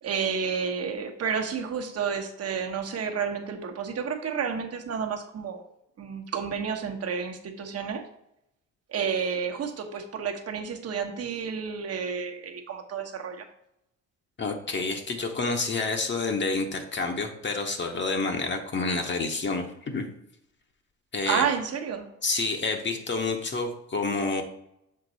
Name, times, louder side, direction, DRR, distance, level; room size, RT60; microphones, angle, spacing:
voice 1, 0.0-5.6 6.0-8.1 8.9-13.5 21.3-22.1, right 6 dB, 55° right, 4 dB, 1.1 m, -30 dB
voice 2, 14.4-20.1 21.1-21.5 22.2-24.4, left 3 dB, 40° left, 4 dB, 0.9 m, -28 dB
6.6 x 4.0 x 4.0 m, 0.80 s
cardioid pair, 90°, 30 cm